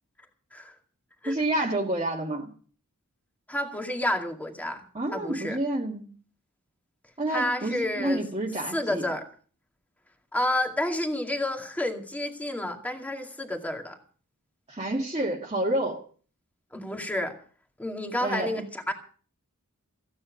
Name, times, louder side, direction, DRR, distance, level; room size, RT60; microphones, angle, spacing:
voice 1, 1.3-2.5 4.9-6.1 7.2-9.1 14.7-16.0 18.2-18.6, right 1 dB, 25° right, -3 dB, 1.9 m, -29 dB
voice 2, 3.5-4.8 5.1-5.6 7.3-8.2 8.7-9.2 10.3-14.0 16.7-17.4 17.8-18.9, left 1 dB, 5° left, 3 dB, 2.3 m, -30 dB
15.5 x 9.8 x 6.3 m, 0.42 s
head